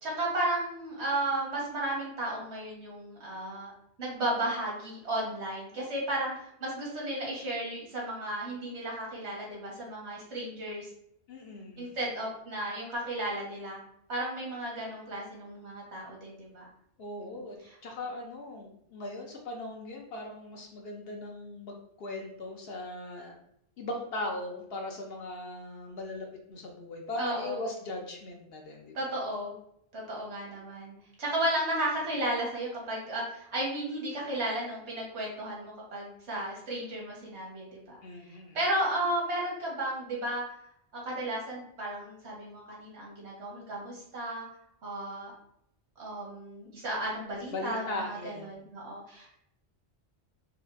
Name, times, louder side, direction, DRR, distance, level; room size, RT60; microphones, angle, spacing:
voice 1, 0.0-3.7 4.0-6.3 6.6-10.9 11.8-13.8 14.1-16.7 17.2-17.8 27.2-27.6 28.9-29.5 29.9-38.0 38.5-40.4 40.9-44.5 44.8-45.3 46.0-49.4, right 1 dB, 80° right, -4 dB, 1.5 m, -34 dB
voice 2, 11.3-11.9 17.0-17.6 17.8-23.4 23.8-29.1 38.0-38.6 47.5-48.6, left 2 dB, 65° left, 1 dB, 0.8 m, -39 dB
4.3 x 2.4 x 2.5 m, 0.73 s
omnidirectional pair, 1.1 m